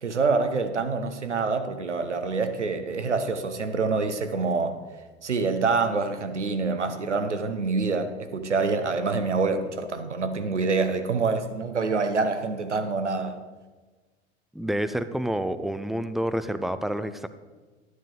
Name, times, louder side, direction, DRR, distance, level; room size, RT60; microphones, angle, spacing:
voice 1, 0.0-4.8 5.2-13.4, right 4 dB, 90° right, 0.8 m, -26 dB
voice 2, 14.5-17.3, right 1 dB, ahead, 0.4 m, -28 dB
11.5 x 9.4 x 3.8 m
figure-of-eight pair, 75°, 34 cm